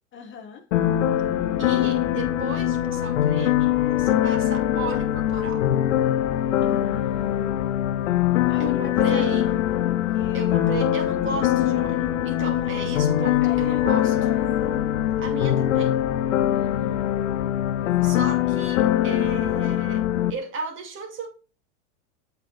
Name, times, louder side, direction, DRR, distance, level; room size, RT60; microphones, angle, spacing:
voice 1, 0.1-0.6 6.6-7.8 8.5-10.6 12.4-12.7 13.0-14.9 16.5-17.1 17.8-18.3, left 6 dB, 30° left, 1.2 m, -39 dB
sound 1, 0.7-20.3, left 12 dB, 75° left, 0.9 m, -22 dB
voice 2, 1.6-5.7 8.6-9.5 10.3-14.2 15.2-16.0 18.0-21.3, right 4 dB, 30° right, 2.3 m, -35 dB
7.9 x 4.3 x 4.0 m
hypercardioid pair, 115°, 38 cm